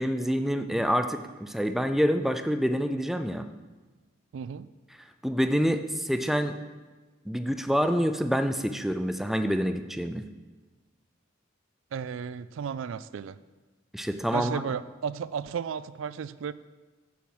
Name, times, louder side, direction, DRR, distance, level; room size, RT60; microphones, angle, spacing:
voice 1, 0.0-3.4 5.2-6.6 7.3-10.2 13.9-14.6, equal, ahead, 9 dB, 0.4 m, -27 dB
voice 2, 4.3-4.7 11.9-13.4 14.3-16.5, right 7 dB, 75° right, 16 dB, 0.3 m, -34 dB
7.0 x 6.2 x 7.7 m, 1.3 s
head